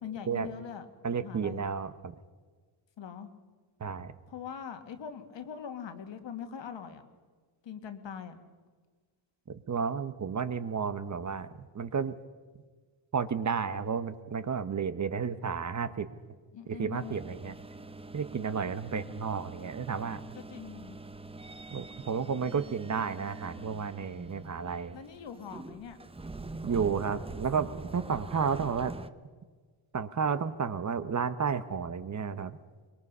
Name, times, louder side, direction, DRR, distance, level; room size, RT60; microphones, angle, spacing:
voice 1, 0.0-0.9 1.2-1.6 3.0-3.3 4.3-7.0 7.6-8.4 16.5-17.1 20.3-21.0 24.9-26.0, left 7 dB, 60° left, 7 dB, 2.0 m, -42 dB
voice 2, 1.0-2.1 3.8-4.1 9.7-12.1 13.1-16.1 16.7-17.6 18.1-20.2 21.7-25.0 26.6-28.9 29.9-32.6, right 6 dB, 35° right, 12 dB, 1.0 m, -32 dB
sound 1, 16.9-29.1, right 2 dB, 10° right, 0.7 m, -44 dB
23.5 x 21.5 x 5.5 m, 1.5 s
cardioid pair, 110°, 49 cm